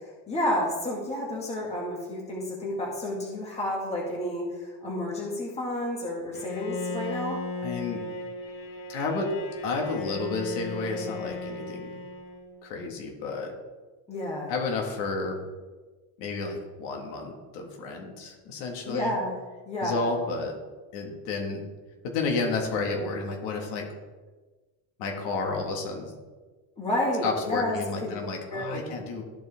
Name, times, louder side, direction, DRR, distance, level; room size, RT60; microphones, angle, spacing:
voice 1, 0.3-7.4 14.1-14.5 18.8-19.4 19.7-20.1 26.8-27.8 28.0-28.2 28.5-28.9, left 1 dB, 15° left, -3 dB, 1.8 m, -30 dB
Bowed string instrument, 6.3-12.6, left 2 dB, 30° left, 1.4 m, -36 dB
voice 2, 7.6-8.0 8.9-9.3 9.6-12.0 12.6-13.5 14.5-15.4 16.2-19.1 19.8-20.6 20.9-21.7 22.0-23.9 25.0-26.1 27.2-29.2, left 3 dB, 70° left, 1 dB, 1.8 m, -31 dB
13.5 x 4.7 x 3.5 m, 1.3 s
cardioid pair, 170°, 41 cm